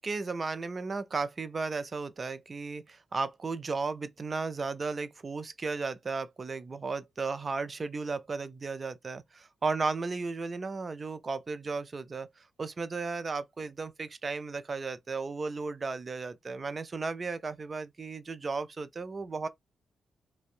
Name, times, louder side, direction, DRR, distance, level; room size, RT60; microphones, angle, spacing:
voice 1, 0.0-12.3 12.6-19.5, right 4 dB, 45° right, 0.4 m, -35 dB
2.6 x 2.1 x 2.4 m
hypercardioid pair, 45°, 0 cm